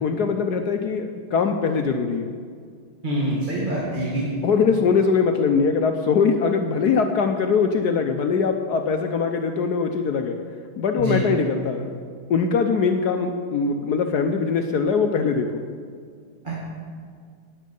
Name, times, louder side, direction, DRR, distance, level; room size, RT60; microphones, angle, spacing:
voice 1, 0.0-2.3 4.4-10.4 10.8-11.9 12.3-15.6, left 5 dB, 70° left, 5 dB, 0.9 m, -22 dB
voice 2, 3.0-4.3 11.0-11.2 16.4-16.6, right 1 dB, 20° right, -6 dB, 2.1 m, -25 dB
18.5 x 7.4 x 5.4 m, 2.1 s
omnidirectional pair, 2.4 m